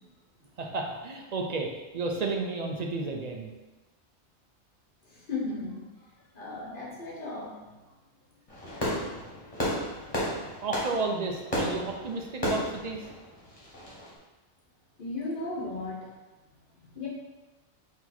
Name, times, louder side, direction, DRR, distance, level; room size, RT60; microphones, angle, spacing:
voice 1, 0.6-1.7 1.9-3.5 10.2-10.3 10.6-13.0, right 3 dB, 55° right, 2 dB, 0.5 m, -32 dB
voice 2, 5.0-6.1 6.3-7.5 15.0-16.1 16.8-17.1, left 3 dB, 50° left, -5 dB, 1.0 m, -36 dB
Fireworks, 8.5-14.1, equal, 30° left, 1.3 m, -33 dB
4.6 x 2.8 x 4.2 m, 1.1 s
omnidirectional pair, 1.2 m